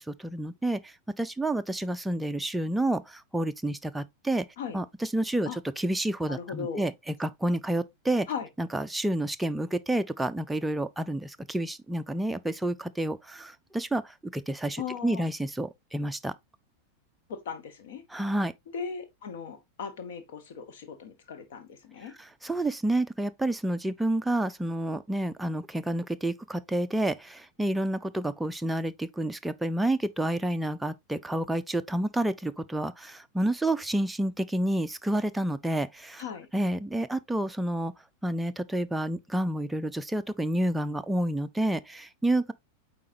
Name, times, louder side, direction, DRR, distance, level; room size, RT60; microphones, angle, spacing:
voice 1, 0.0-4.5 4.7-8.3 8.6-16.3 18.1-18.5 22.2-36.2 36.5-37.9 38.2-42.5, right 1 dB, 5° right, 0.4 m, -29 dB
voice 2, 6.3-6.9 8.3-8.5 14.8-15.3 17.3-18.0 18.7-22.1 36.2-36.5, left 6 dB, 55° left, 1.2 m, -38 dB
8.3 x 4.2 x 2.7 m
figure-of-eight pair, 90°, 0 cm